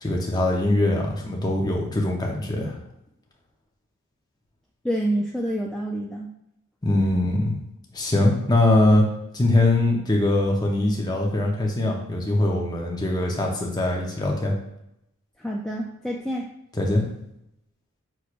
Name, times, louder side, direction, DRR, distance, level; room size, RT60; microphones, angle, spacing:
voice 1, 0.0-2.8 6.8-7.6 7.9-9.1 9.3-14.5 16.8-17.0, left 1 dB, 20° left, 0 dB, 0.7 m, -22 dB
voice 2, 4.8-6.3 15.4-16.5, right 1 dB, ahead, -2 dB, 0.3 m, -27 dB
6.0 x 3.1 x 2.5 m, 0.81 s
head